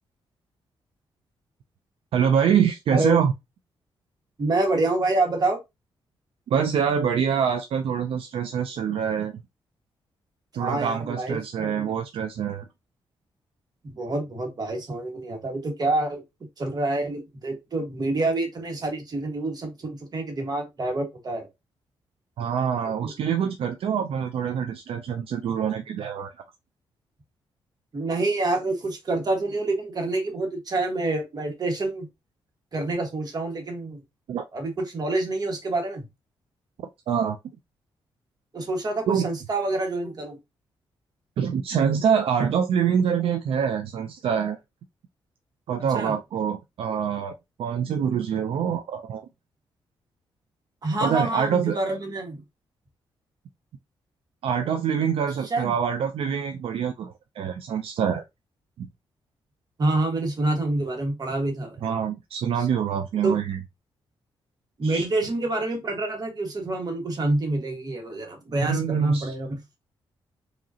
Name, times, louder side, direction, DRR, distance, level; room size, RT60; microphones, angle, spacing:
voice 1, 2.1-3.3 6.5-9.3 10.5-12.6 22.4-26.3 34.3-34.4 37.1-37.4 39.1-39.3 41.4-44.6 45.7-47.3 47.6-49.3 51.0-51.8 54.4-58.2 58.8-58.9 61.8-63.6 64.8-65.1 68.6-69.3, right 7 dB, 75° right, 0.5 m, -25 dB
voice 2, 4.4-5.6 10.6-11.9 13.8-16.2 16.6-21.5 22.9-23.1 27.9-32.1 32.7-34.0 34.5-36.0 38.5-40.4 45.9-46.1 50.8-52.4 55.5-55.7 59.8-61.8 62.6-62.7 63.2-63.4 64.8-69.6, right 2 dB, 40° right, 1.6 m, -27 dB
5.0 x 2.9 x 2.8 m
cardioid pair, 105°, 10 cm